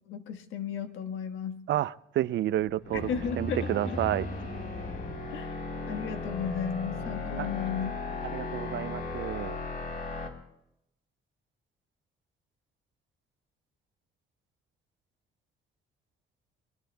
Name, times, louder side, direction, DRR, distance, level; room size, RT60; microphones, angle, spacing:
voice 1, 0.1-1.6 2.9-4.0 5.3-8.0, left 7 dB, 85° left, 7 dB, 1.4 m, -35 dB
voice 2, 1.7-3.1 3.4-4.3 7.4-7.5 8.3-9.6, right 13 dB, 65° right, 18 dB, 0.5 m, -30 dB
sound 1, 2.5-10.3, left 3 dB, 45° left, 3.7 m, -36 dB
28.5 x 22.5 x 2.3 m, 0.82 s
cardioid pair, 90°, 20 cm